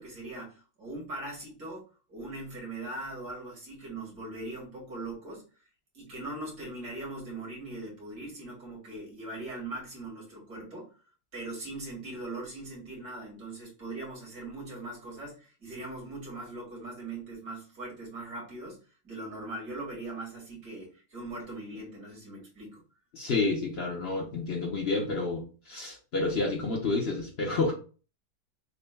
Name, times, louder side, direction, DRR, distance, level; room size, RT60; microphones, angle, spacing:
voice 1, 0.0-5.4 5.9-10.9 11.3-18.8 19.0-22.8, right 2 dB, 75° right, -3 dB, 2.6 m, -40 dB
voice 2, 23.1-27.7, left 3 dB, 50° left, 0 dB, 0.9 m, -29 dB
6.7 x 2.4 x 2.2 m, 0.36 s
omnidirectional pair, 1.6 m